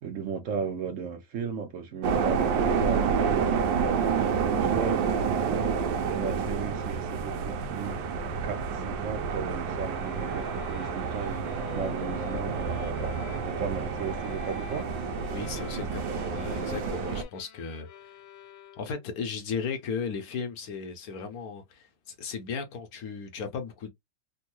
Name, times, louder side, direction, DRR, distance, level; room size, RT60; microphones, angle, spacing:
voice 1, 0.0-2.4 2.8-8.0 8.4-13.1 13.4-14.9, right 6 dB, 65° right, 0.7 m, -35 dB
sound 1, 2.0-17.2, right 6 dB, 80° right, 1.3 m, -29 dB
sound 2, 9.9-19.1, left 10 dB, 90° left, 1.4 m, -46 dB
voice 2, 15.3-17.9 18.8-23.9, left 5 dB, 65° left, 0.9 m, -36 dB
3.5 x 2.2 x 2.9 m
omnidirectional pair, 2.1 m